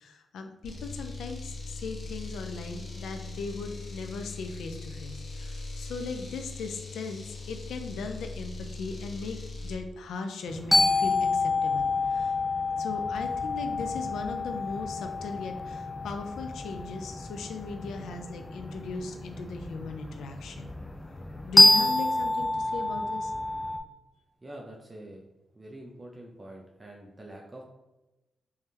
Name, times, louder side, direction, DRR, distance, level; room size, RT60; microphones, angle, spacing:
voice 1, 0.0-9.4 9.6-12.4 12.8-20.8 21.5-23.3, left 4 dB, 90° left, 6 dB, 0.4 m, -38 dB
sound 1, 0.6-9.8, left 3 dB, 65° left, 0.8 m, -40 dB
sound 2, 10.5-23.8, left 2 dB, 20° left, 0.4 m, -27 dB
voice 2, 24.4-25.2 25.6-27.6, right 1 dB, 25° right, -2 dB, 0.6 m, -45 dB
3.5 x 3.1 x 2.8 m, 1.0 s
cardioid pair, 65°, 0 cm